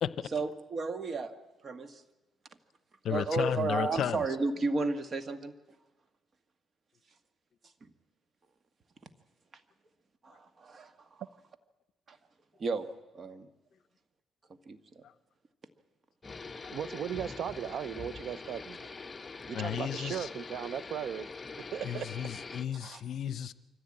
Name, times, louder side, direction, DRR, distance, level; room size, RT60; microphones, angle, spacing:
voice 1, 0.3-1.3 1.6-2.0 3.1-5.5 7.8-7.9 10.2-11.2 12.1-12.2 12.6-12.9 13.1-13.5 14.7-15.0 16.6-16.7 19.8-19.9 22.8-23.0, right 3 dB, 45° right, 10 dB, 1.6 m, -33 dB
voice 2, 3.0-4.2 15.0-15.1 19.5-20.3 21.8-23.5, left 9 dB, 65° left, 16 dB, 0.7 m, -33 dB
sound 1, 16.2-22.7, left 4 dB, 30° left, 0.7 m, -44 dB
voice 3, 16.7-18.9 19.5-21.3 21.6-22.1, right 9 dB, 65° right, 17 dB, 0.6 m, -37 dB
24.0 x 15.0 x 8.7 m, 1.1 s
cardioid pair, 90°, 0 cm